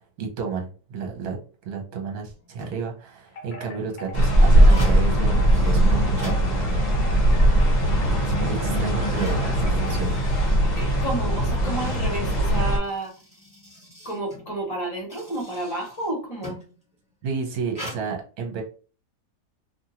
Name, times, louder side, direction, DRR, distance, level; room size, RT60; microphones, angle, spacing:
voice 1, 0.2-1.4 1.6-6.4 8.2-10.2 17.2-18.6, right 5 dB, 70° right, 1 dB, 1.3 m, -31 dB
sound 1, 2.3-3.0 3.7-7.1 7.4-7.5 8.2-8.3 8.8-11.3 12.5-16.8 17.7-18.0, left 1 dB, 5° right, 1.2 m, -42 dB
Wind chime, 3.3-10.7, left 1 dB, 55° left, 0.7 m, -43 dB
sound 2, 4.1-12.8, right 1 dB, 40° left, 1.3 m, -20 dB
voice 2, 10.6-13.1 14.0-16.6, right 2 dB, 25° left, -1 dB, 1.0 m, -31 dB
2.7 x 2.6 x 2.8 m, 0.38 s
omnidirectional pair, 1.7 m